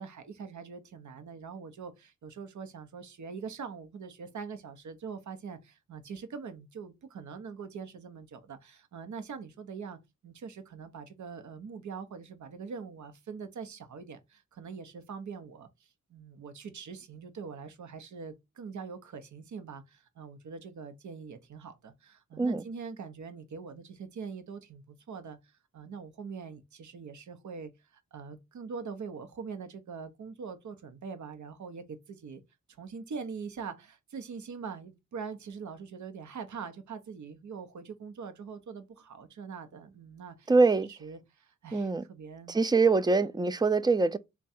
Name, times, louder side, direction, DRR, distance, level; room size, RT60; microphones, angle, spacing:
voice 1, 0.0-32.4 32.8-40.5 40.8-42.6, right 5 dB, 75° right, 0.7 m, -43 dB
voice 2, 40.5-40.9 41.7-42.0 42.5-44.2, right 3 dB, 15° right, 0.3 m, -24 dB
3.5 x 2.3 x 4.1 m
cardioid pair, 60°, 29 cm